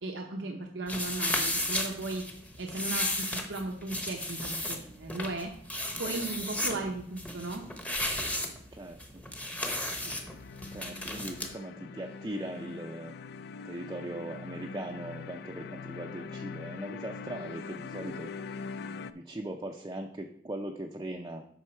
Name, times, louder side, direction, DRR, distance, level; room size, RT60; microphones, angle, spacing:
voice 1, 0.0-2.2 2.6-5.5 6.0-7.6, right 2 dB, 90° right, 1 dB, 0.8 m, -36 dB
sound 1, 0.9-11.5, left 1 dB, 10° left, 0.9 m, -34 dB
voice 2, 8.7-9.2 10.7-13.2 13.6-18.6 19.1-21.5, right 1 dB, 20° right, 2 dB, 0.5 m, -40 dB
sound 2, 9.6-19.1, left 5 dB, 60° left, 0.4 m, -43 dB
8.1 x 5.7 x 4.4 m, 0.67 s
head